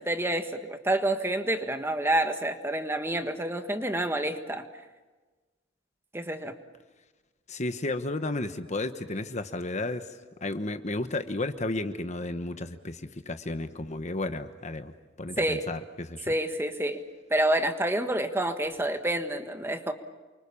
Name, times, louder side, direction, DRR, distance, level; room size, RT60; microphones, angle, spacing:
voice 1, 0.0-4.6 6.1-6.5 15.4-15.6 16.3-17.0 17.3-19.9, right 1 dB, 10° right, 7 dB, 1.5 m, -28 dB
voice 2, 7.5-10.1 10.4-14.9 15.2-16.3, left 2 dB, 35° left, 9 dB, 1.1 m, -33 dB
29.0 x 24.5 x 7.1 m, 1.2 s
head